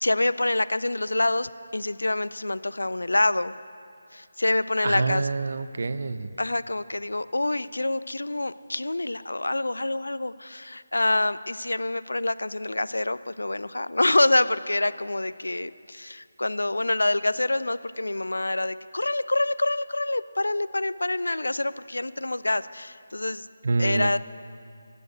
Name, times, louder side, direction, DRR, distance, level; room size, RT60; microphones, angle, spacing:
voice 1, 0.0-3.5 4.1-5.3 6.4-23.5 23.8-24.2, left 2 dB, 75° left, 15 dB, 0.4 m, -26 dB
voice 2, 4.8-6.3 23.6-24.2, right 3 dB, 55° right, 13 dB, 0.5 m, -26 dB
14.5 x 7.0 x 8.0 m, 2.3 s
figure-of-eight pair, 155°, 0 cm